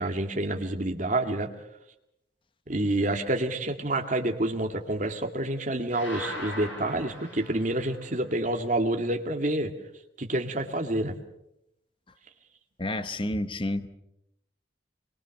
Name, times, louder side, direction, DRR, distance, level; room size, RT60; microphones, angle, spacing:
voice 1, 0.0-1.5 2.7-9.7 10.2-11.2, right 1 dB, 40° right, 4 dB, 2.2 m, -28 dB
sound 1, 5.9-8.2, equal, 75° left, 6.7 m, -39 dB
voice 2, 12.8-13.9, left 1 dB, 25° left, 10 dB, 1.0 m, -30 dB
26.0 x 23.0 x 6.6 m, 0.81 s
head